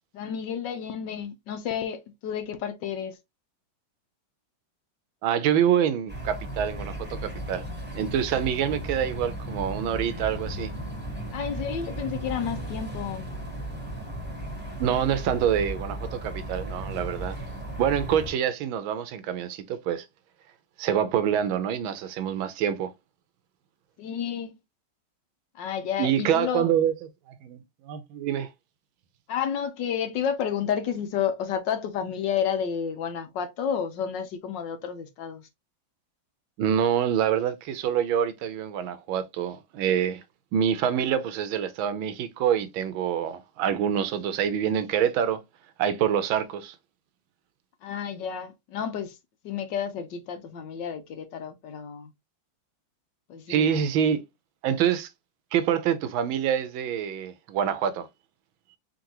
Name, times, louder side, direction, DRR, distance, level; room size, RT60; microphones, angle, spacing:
voice 1, 0.1-3.1 11.3-13.3 24.0-24.6 25.5-26.7 29.3-35.5 47.8-49.2 49.4-52.1 53.3-53.8, left 8 dB, 65° left, 1.4 m, -31 dB
voice 2, 5.2-7.6 7.9-10.7 14.8-17.4 17.8-20.0 20.8-22.9 26.0-26.9 27.4-27.6 27.9-28.5 36.6-40.2 40.5-45.4 45.8-46.7 53.5-54.2 54.6-55.1 55.5-58.1, right 9 dB, 85° right, 1.5 m, -26 dB
sound 1, 6.1-18.3, right 1 dB, 5° right, 1.2 m, -35 dB
4.4 x 3.9 x 2.9 m
omnidirectional pair, 2.2 m